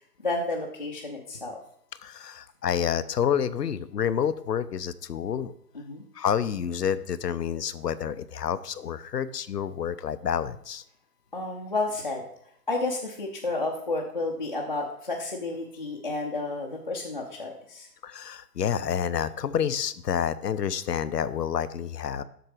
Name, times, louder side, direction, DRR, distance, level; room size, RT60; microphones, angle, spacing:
voice 1, 0.2-1.6 5.7-6.0 11.3-12.2 12.7-17.9, left 2 dB, 30° left, -3 dB, 0.6 m, -31 dB
voice 2, 2.0-5.5 6.2-10.8 18.0-22.2, left 8 dB, 90° left, 13 dB, 0.7 m, -28 dB
7.8 x 6.1 x 4.8 m, 0.70 s
hypercardioid pair, 165°, 47 cm